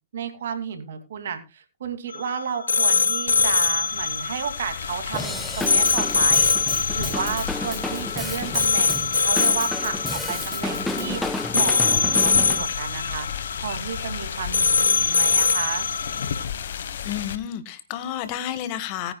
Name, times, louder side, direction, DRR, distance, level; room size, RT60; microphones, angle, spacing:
voice 1, 0.1-15.9, right 7 dB, 60° right, 7 dB, 2.6 m, -32 dB
sound 1, 2.1-16.4, left 5 dB, 80° left, 0.7 m, -23 dB
sound 2, 3.3-17.4, left 8 dB, 65° left, 1.3 m, -33 dB
Drum kit / Drum, 5.1-12.6, left 2 dB, 5° left, 0.8 m, -31 dB
voice 2, 17.0-19.1, left 11 dB, 40° left, 11 dB, 1.5 m, -31 dB
20.0 x 9.7 x 2.3 m, 0.28 s
hypercardioid pair, 120°, 0 cm